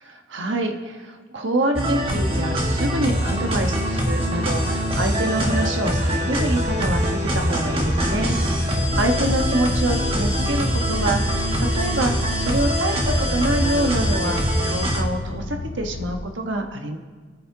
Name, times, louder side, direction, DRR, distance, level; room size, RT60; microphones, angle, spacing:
voice 1, 0.3-14.4 14.6-17.0, right 1 dB, 60° right, 4 dB, 1.3 m, -26 dB
sound 1, 1.7-15.0, equal, 25° right, 1.5 m, -23 dB
sound 2, 6.6-16.2, left 1 dB, 50° left, 0.6 m, -32 dB
27.0 x 9.4 x 2.9 m, 1.5 s
head